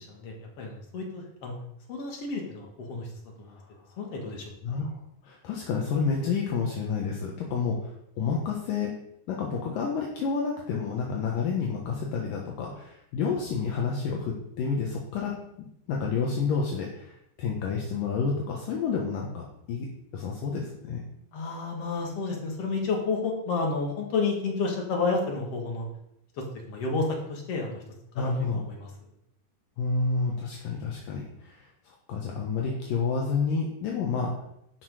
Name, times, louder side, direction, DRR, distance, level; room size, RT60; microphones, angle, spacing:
voice 1, 0.1-1.6 1.9-3.1 3.4-3.5 4.0-4.4 21.3-25.9 26.7-27.8 28.2-28.9, left 4 dB, 50° left, 0 dB, 2.6 m, -30 dB
voice 2, 4.6-5.0 5.2-8.9 9.3-15.4 15.9-19.9 20.1-21.0 28.2-28.6 29.8-34.4, left 5 dB, 70° left, -1 dB, 2.7 m, -29 dB
12.0 x 6.2 x 4.8 m, 0.78 s
omnidirectional pair, 4.2 m